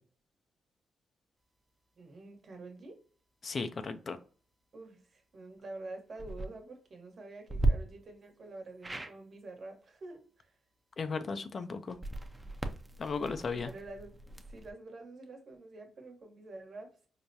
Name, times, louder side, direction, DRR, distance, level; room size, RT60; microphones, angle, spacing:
voice 1, 2.0-3.0 4.7-10.6 13.5-17.1, right 2 dB, 55° right, 1.1 m, -48 dB
voice 2, 3.4-4.2 11.0-12.0 13.0-13.7, left 4 dB, 50° left, 0.4 m, -35 dB
sound 1, 6.1-6.5 7.5-7.7 8.8-9.1 11.9-14.7, right 2 dB, 20° right, 0.6 m, -35 dB
4.7 x 2.2 x 2.7 m
supercardioid pair, 55°, 0 cm